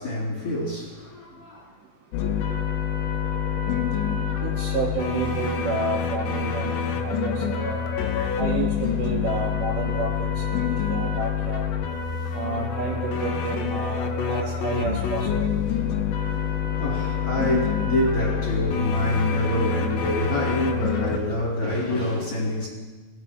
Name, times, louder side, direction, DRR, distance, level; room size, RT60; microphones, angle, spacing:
voice 1, 0.0-1.7 2.2-2.3 14.6-14.9 15.6-15.9 16.1-22.7, left 1 dB, 45° left, 3.0 m, -26 dB
sound 1, 2.1-21.2, left 7 dB, 90° left, 2.0 m, -27 dB
voice 2, 4.4-7.8 8.4-11.6 12.3-15.6, right 4 dB, 80° right, 1.9 m, -30 dB
18.0 x 7.3 x 3.5 m
omnidirectional pair, 5.0 m